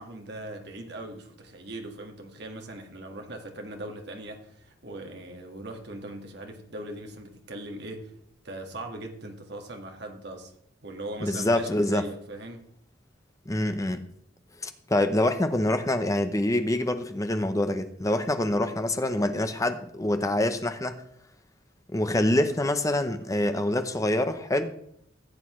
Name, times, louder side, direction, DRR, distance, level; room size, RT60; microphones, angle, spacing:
voice 1, 0.0-8.1 8.4-10.5 10.8-12.7, right 1 dB, 60° right, 3 dB, 1.7 m, -40 dB
voice 2, 11.2-12.0 13.5-14.0 14.6-21.0 21.9-24.7, left 1 dB, 15° left, 8 dB, 0.7 m, -26 dB
15.5 x 8.0 x 3.1 m, 0.69 s
head